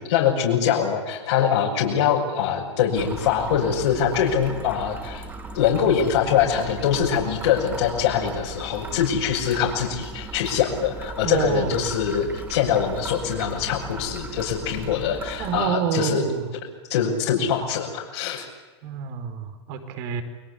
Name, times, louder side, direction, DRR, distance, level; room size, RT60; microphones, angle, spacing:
voice 1, 0.1-5.2 5.5-16.3 16.9-18.5, left 8 dB, 70° left, -4 dB, 6.4 m, -23 dB
sound 1, 2.9-15.7, right 2 dB, 15° right, 4.7 m, -37 dB
voice 2, 11.2-11.7 15.4-16.4 18.8-20.2, right 8 dB, 50° right, 8 dB, 4.8 m, -27 dB
29.5 x 21.5 x 8.4 m, 1.3 s
hypercardioid pair, 115°, 15 cm